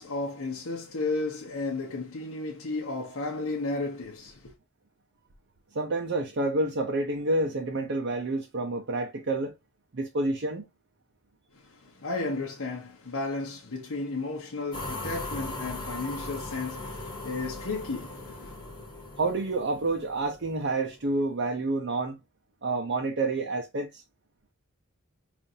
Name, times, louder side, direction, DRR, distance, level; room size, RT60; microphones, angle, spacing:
voice 1, 0.0-4.5 11.5-18.5, left 3 dB, 70° left, 0.8 m, -33 dB
voice 2, 5.7-9.5 9.9-10.6 19.2-22.2 22.6-24.0, right 2 dB, 50° right, 0.6 m, -28 dB
sound 1, 14.7-21.0, left 2 dB, 20° left, 1.2 m, -39 dB
5.3 x 2.5 x 2.6 m
head